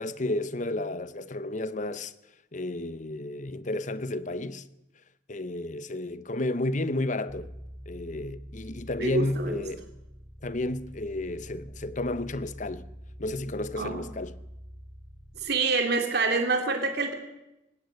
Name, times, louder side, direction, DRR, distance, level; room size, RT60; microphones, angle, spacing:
voice 1, 0.0-2.1 2.5-4.6 5.3-7.5 7.9-9.9 10.4-12.9 13.2-14.4, left 2 dB, 40° left, 0.9 m, -32 dB
sound 1, 7.3-15.5, equal, 25° left, 3.6 m, -46 dB
voice 2, 9.0-9.6 13.8-14.1 15.4-17.1, right 3 dB, 60° right, 2.4 m, -26 dB
19.0 x 17.5 x 8.0 m
head